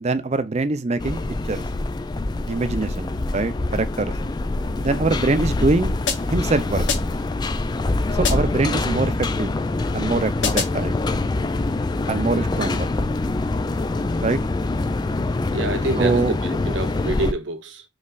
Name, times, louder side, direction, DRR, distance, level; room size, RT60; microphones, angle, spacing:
voice 1, 0.0-1.2 1.5-1.6 2.5-4.1 4.8-5.9 6.3-6.9 8.2-9.6 9.9-11.0 12.1-12.9 14.2-14.4 16.0-16.4, right 3 dB, 35° right, 0.5 m, -23 dB
sound 1, 1.0-17.3, left 2 dB, 20° left, 0.3 m, -25 dB
sound 2, 6.1-6.5 6.9-7.3 8.2-8.7 10.4-10.9, left 7 dB, 75° left, 0.9 m, -27 dB
voice 2, 15.5-17.8, right 2 dB, 75° right, 0.9 m, -27 dB
5.3 x 3.2 x 2.4 m
head